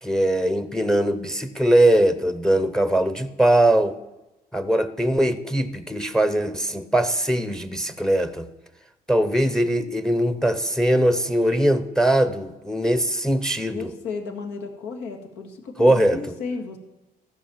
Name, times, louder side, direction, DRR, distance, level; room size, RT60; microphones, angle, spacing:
voice 1, 0.0-4.0 4.5-8.5 9.1-13.9 15.8-16.2, right 1 dB, 5° left, 13 dB, 0.7 m, -21 dB
voice 2, 13.7-16.8, left 4 dB, 85° left, 3 dB, 2.1 m, -33 dB
14.0 x 6.4 x 7.2 m, 1.0 s
cardioid pair, 110°, 17 cm